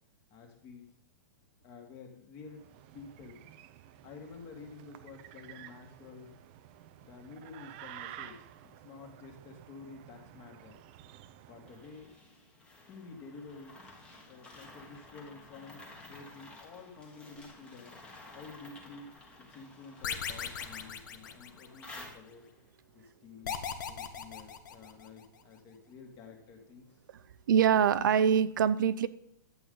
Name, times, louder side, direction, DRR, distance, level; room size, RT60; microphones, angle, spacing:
voice 1, 0.3-1.0 1.6-2.7 2.9-3.4 4.0-6.4 7.0-10.8 11.5-12.1 12.9-18.0 18.3-22.5 22.9-27.0, left 4 dB, 25° left, 3 dB, 1.8 m, -50 dB
sound 1, 2.4-12.2, right 12 dB, 30° right, 0.5 m, -52 dB
sound 2, 11.7-22.7, left 2 dB, 10° left, 1.4 m, -52 dB
sound 3, 20.0-22.0 23.4-25.2, left 8 dB, 70° left, 1.2 m, -38 dB
voice 2, 27.5-29.1, right 8 dB, 75° right, 13 dB, 0.6 m, -24 dB
11.0 x 8.0 x 3.8 m, 0.72 s
supercardioid pair, 170°, 11 cm